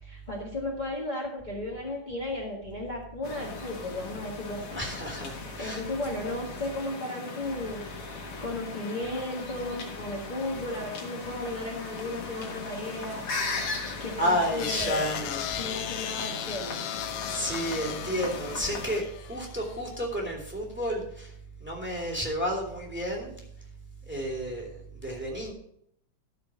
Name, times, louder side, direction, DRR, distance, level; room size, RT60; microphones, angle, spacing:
voice 1, 0.0-4.8 5.3-13.3 14.0-15.0 15.6-16.9, left 1 dB, 25° left, -4 dB, 1.0 m, -35 dB
sound 1, 3.2-19.0, left 4 dB, 50° left, 2.3 m, -38 dB
voice 2, 4.7-5.8 14.2-15.6 17.3-21.3 21.6-23.4 24.1-25.5, equal, 5° right, -2 dB, 2.1 m, -31 dB
sound 2, 14.4-19.8, left 11 dB, 75° left, 1.8 m, -36 dB
13.5 x 4.8 x 6.1 m, 0.70 s
omnidirectional pair, 3.4 m